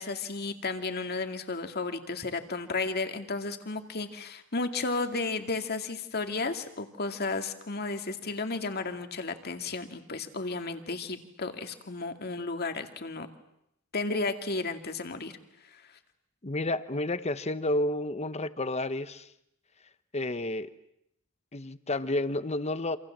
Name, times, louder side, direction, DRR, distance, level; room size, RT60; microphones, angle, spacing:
voice 1, 0.0-13.3 13.9-15.4 15.7-15.8, left 3 dB, 50° left, 6 dB, 2.3 m, -33 dB
voice 2, 16.4-19.3 20.1-20.7 21.5-23.0, left 2 dB, 30° left, 13 dB, 1.1 m, -30 dB
28.5 x 27.0 x 7.5 m, 0.78 s
head